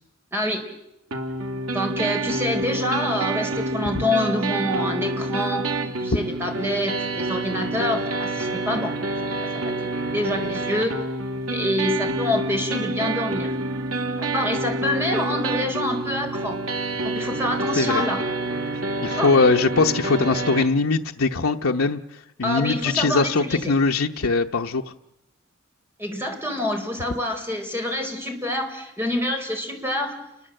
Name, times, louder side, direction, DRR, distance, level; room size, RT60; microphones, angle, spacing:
voice 1, 0.3-0.6 1.7-5.7 6.0-9.0 10.1-11.0 11.5-13.5 14.2-16.6 17.0-18.2 19.2-19.3 22.4-23.7 26.0-30.2, left 1 dB, 10° right, 3 dB, 4.6 m, -26 dB
sound 1, 1.1-20.7, right 2 dB, 80° right, 2.7 m, -28 dB
voice 2, 19.0-22.0 22.4-24.8, left 3 dB, 80° left, 3 dB, 0.9 m, -21 dB
29.5 x 21.5 x 7.8 m, 0.87 s
head